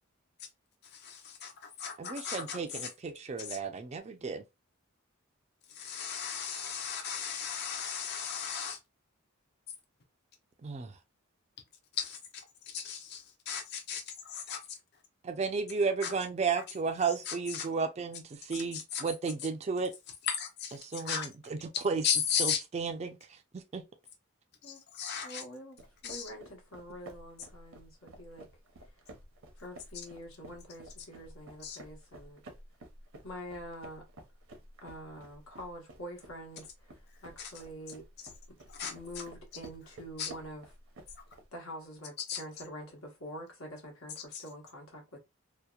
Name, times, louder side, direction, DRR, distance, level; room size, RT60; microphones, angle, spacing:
voice 1, 0.8-2.9 3.4-3.6 5.7-8.8 11.9-14.8 16.0-16.1 17.3-17.7 18.5-19.1 20.2-21.3 21.7-22.6 24.6-25.4 26.0-26.3 31.6-31.8 37.4-37.5 38.7-39.2 40.2-40.3 42.3-42.4 44.3-44.4, left 7 dB, 50° left, 0.6 m, -36 dB
voice 2, 2.0-4.4 10.6-10.9 15.2-19.9 20.8-22.0 22.4-23.2 23.5-23.8, right 5 dB, 30° right, 0.3 m, -33 dB
voice 3, 25.2-25.8 26.0-28.5 29.6-32.4 33.2-34.0 34.8-38.1 38.9-40.7 41.5-45.3, equal, 85° left, 1.1 m, -46 dB
sound 1, 25.8-41.4, right 1 dB, 70° right, 0.6 m, -52 dB
2.8 x 2.0 x 2.2 m
head